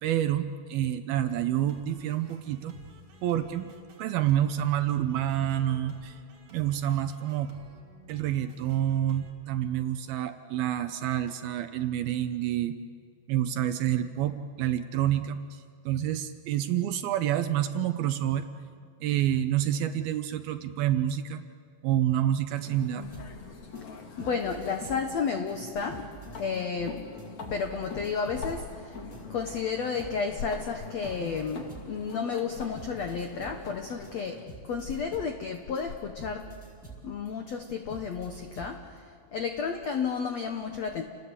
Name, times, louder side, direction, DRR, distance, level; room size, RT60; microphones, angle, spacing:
voice 1, 0.0-2.7 3.2-3.7 4.0-6.2 6.5-7.5 8.1-12.8 13.3-18.5 19.0-21.4 21.8-23.0, right 11 dB, 75° right, 9 dB, 2.4 m, -28 dB
sound 1, 1.1-9.3, right 2 dB, 45° right, 3.7 m, -52 dB
sound 2, 22.6-34.4, left 4 dB, 45° left, 3.2 m, -44 dB
sound 3, 23.1-29.6 30.0-38.8, right 4 dB, 5° left, 5.4 m, -47 dB
voice 2, 24.2-26.1 26.4-27.0 27.5-29.0 29.3-36.5 37.0-41.0, left 5 dB, 80° left, 5 dB, 1.5 m, -32 dB
30.0 x 19.5 x 8.2 m, 2.1 s
omnidirectional pair, 5.0 m